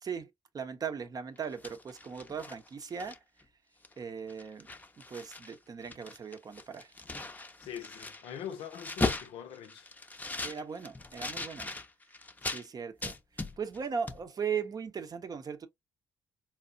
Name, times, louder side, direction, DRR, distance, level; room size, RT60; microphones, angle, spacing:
voice 1, 0.0-3.2 4.0-4.7 5.0-6.9 10.4-11.7 12.4-15.7, right 6 dB, 40° right, 0.7 m, -38 dB
sound 1, 1.4-3.4 3.8-4.0 4.3-5.6 5.8-12.6 13.0-13.8 14.1-14.2, left 3 dB, 15° left, 0.6 m, -38 dB
voice 2, 7.6-9.9, left 9 dB, 65° left, 0.6 m, -43 dB
4.3 x 2.1 x 2.5 m
hypercardioid pair, 45°, 10 cm